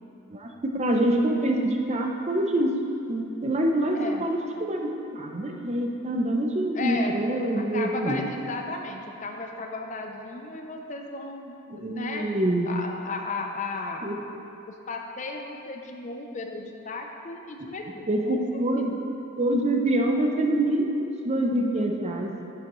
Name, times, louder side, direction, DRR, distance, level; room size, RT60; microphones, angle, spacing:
voice 1, 0.3-2.7 3.1-8.2 11.7-12.7 14.0-14.2 17.6-17.7 18.1-19.0 19.4-22.3, right 1 dB, 30° right, 2 dB, 0.6 m, -25 dB
voice 2, 3.9-4.3 6.7-7.1 7.4-12.3 12.7-14.1 14.7-18.4 18.8-19.0, left 3 dB, 35° left, 3 dB, 0.5 m, -35 dB
9.7 x 7.2 x 3.1 m, 2.9 s
head